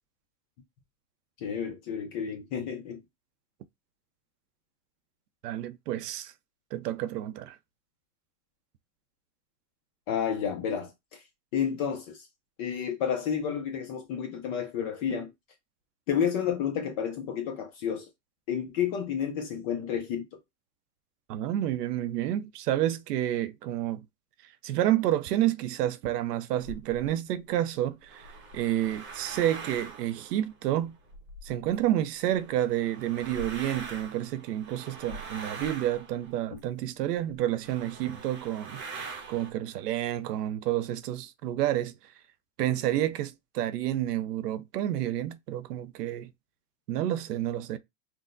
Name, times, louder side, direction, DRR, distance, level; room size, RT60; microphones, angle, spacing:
voice 1, 1.4-3.0 10.1-11.2 11.5-12.3 12.6-15.3 16.1-18.1 18.5-20.3 36.5-36.6, left 8 dB, 25° left, 0.4 m, -31 dB
voice 2, 5.4-6.3 6.7-7.6 21.3-24.1 24.6-28.3 28.5-31.0 31.4-41.9 42.6-46.3 46.9-47.8, right 12 dB, 70° right, 0.6 m, -29 dB
sound 1, 26.6-27.1 27.9-31.8 32.2-36.8 37.3-37.4 37.6-39.5, right 4 dB, 20° right, 0.8 m, -43 dB
5.8 x 2.1 x 2.5 m
supercardioid pair, 140°, 50 cm